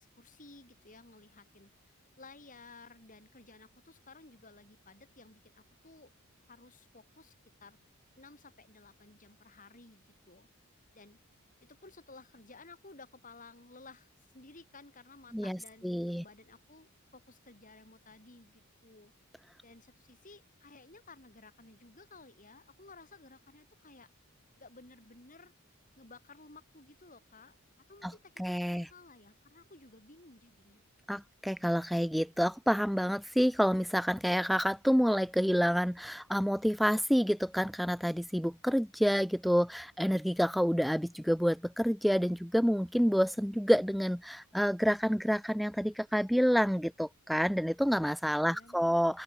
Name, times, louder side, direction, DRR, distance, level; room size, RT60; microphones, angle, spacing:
voice 1, 0.0-6.1 6.5-7.3 7.6-7.8 8.2-10.5 10.9-11.2 11.6-19.1 19.6-24.1 24.6-25.5 26.0-28.4 28.7-30.8 48.4-49.0, left 3 dB, 35° left, 4.0 m, -55 dB
voice 2, 15.8-16.2 28.0-28.1 28.4-28.9 31.1-49.2, equal, ahead, 0.3 m, -28 dB
open air
head